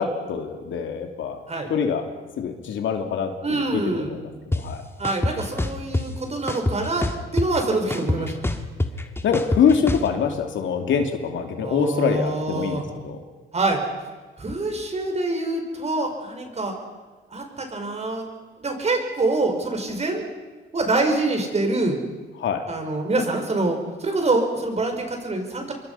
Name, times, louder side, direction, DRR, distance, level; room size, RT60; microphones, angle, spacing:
voice 1, 0.0-1.4 1.7-2.0 2.4-3.8 4.1-4.8 9.2-13.2 22.4-22.6, left 6 dB, 75° left, 5 dB, 2.8 m, -24 dB
voice 2, 3.4-4.2 5.0-7.1 7.3-8.6 11.6-12.9 13.5-13.8 14.4-16.7 17.3-18.2 18.6-20.2 20.7-22.0 22.7-25.7, right 2 dB, 35° right, 4 dB, 5.6 m, -25 dB
sound 1, 4.5-4.6 5.0-6.0 6.5-7.6 7.9-10.1, left 2 dB, 10° left, 1.9 m, -24 dB
26.0 x 23.0 x 5.8 m, 1.3 s
cardioid pair, 90°, 20 cm